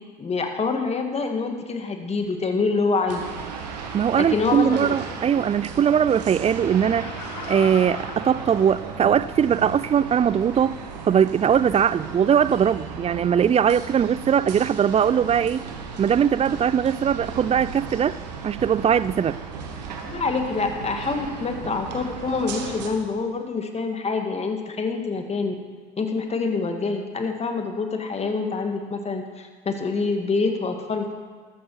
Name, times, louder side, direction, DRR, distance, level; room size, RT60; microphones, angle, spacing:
voice 1, 0.2-3.2 4.2-4.9 20.1-25.5 26.0-31.1, left 4 dB, 30° left, 4 dB, 2.0 m, -26 dB
sound 1, 3.1-22.9, right 5 dB, 85° right, 1.6 m, -36 dB
voice 2, 3.9-7.1 7.5-10.8 11.1-15.6 16.0-18.2 18.4-19.4, right 8 dB, 30° right, 18 dB, 0.5 m, -20 dB
Laughter, 6.6-9.3 9.7-9.8, left 9 dB, 80° left, 0.9 m, -39 dB
13.5 x 13.0 x 4.8 m, 1.5 s
hypercardioid pair, 65°, 21 cm